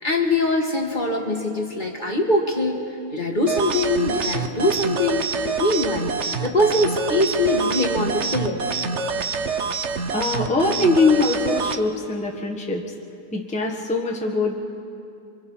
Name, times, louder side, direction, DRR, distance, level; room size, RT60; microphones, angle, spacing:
voice 1, 0.0-2.8 3.1-6.2 6.4-8.6, left 1 dB, 30° left, 1 dB, 1.8 m, -22 dB
sound 1, 3.5-11.8, right 5 dB, 50° right, 1.1 m, -26 dB
voice 2, 10.1-12.8 13.3-14.6, left 3 dB, 5° left, 0 dB, 1.4 m, -22 dB
30.0 x 24.5 x 5.6 m, 2.6 s
omnidirectional pair, 1.6 m